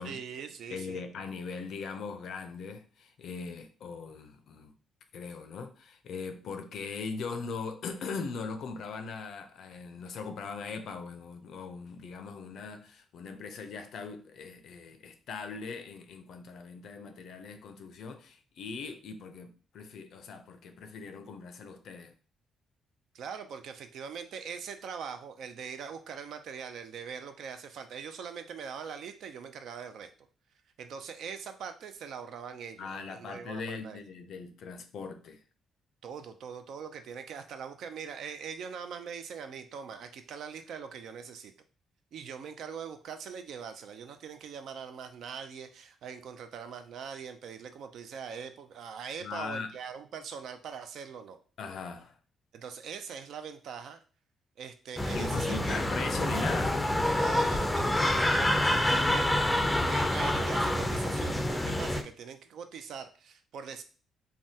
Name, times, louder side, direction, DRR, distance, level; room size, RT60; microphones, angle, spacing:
voice 1, 0.0-1.0 23.1-30.1 30.8-34.0 36.0-41.5 42.1-51.4 52.5-54.0 54.6-55.8 57.1-59.6 59.9-63.8, right 6 dB, 70° right, 0.4 m, -42 dB
voice 2, 0.7-4.7 5.1-22.1 32.8-35.4 49.2-49.7 51.6-52.2 55.1-56.8, left 5 dB, 70° left, 0.4 m, -40 dB
sound 1, 55.0-62.0, left 1 dB, 10° left, 0.4 m, -27 dB
3.4 x 2.2 x 2.7 m
cardioid pair, 90°, 0 cm